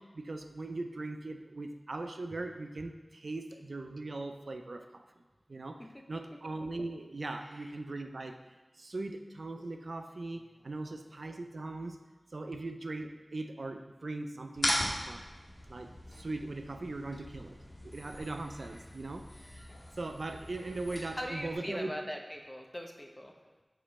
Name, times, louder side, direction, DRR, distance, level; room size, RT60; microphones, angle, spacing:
voice 1, 0.0-5.2 5.5-12.0 12.3-15.3 15.7-21.9, right 2 dB, 85° right, 6 dB, 0.4 m, -40 dB
voice 2, 7.4-7.7 21.1-23.3, equal, 15° left, 2 dB, 0.8 m, -41 dB
sound 1, 14.5-21.5, left 1 dB, 80° left, 1.4 m, -39 dB
5.4 x 5.2 x 4.1 m, 1.2 s
wide cardioid pair, 55°, 0 cm